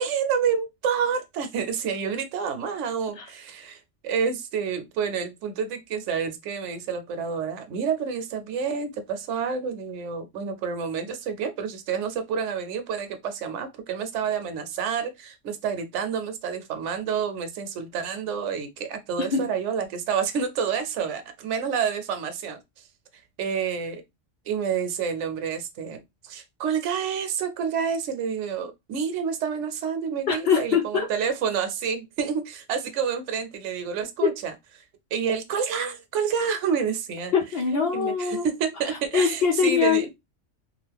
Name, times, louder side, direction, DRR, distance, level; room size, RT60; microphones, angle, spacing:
voice 1, 0.0-22.6 23.4-24.0 24.5-34.5 35.1-37.3 37.9-40.1, right 6 dB, 75° right, 0.9 m, -28 dB
voice 2, 30.3-31.1 34.2-34.3 37.3-38.5 39.1-40.0, left 6 dB, 60° left, 0.7 m, -22 dB
2.5 x 2.4 x 3.3 m
omnidirectional pair, 1.3 m